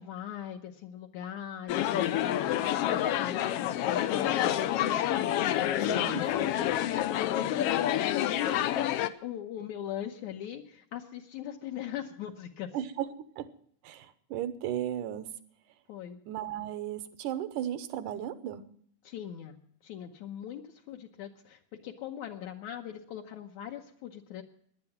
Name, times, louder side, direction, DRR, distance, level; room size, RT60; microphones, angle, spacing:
voice 1, 0.0-8.6 9.2-12.7 15.9-16.2 19.0-19.6 19.8-24.4, left 10 dB, 70° left, 2 dB, 2.2 m, -40 dB
sound 1, 1.7-9.1, left 12 dB, 90° left, 1.3 m, -28 dB
voice 2, 5.9-6.2 12.7-13.1 13.4-13.5 13.8-15.3 16.3-18.6, right 11 dB, 85° right, 12 dB, 2.5 m, -35 dB
17.5 x 10.5 x 5.8 m, 0.65 s
omnidirectional pair, 3.6 m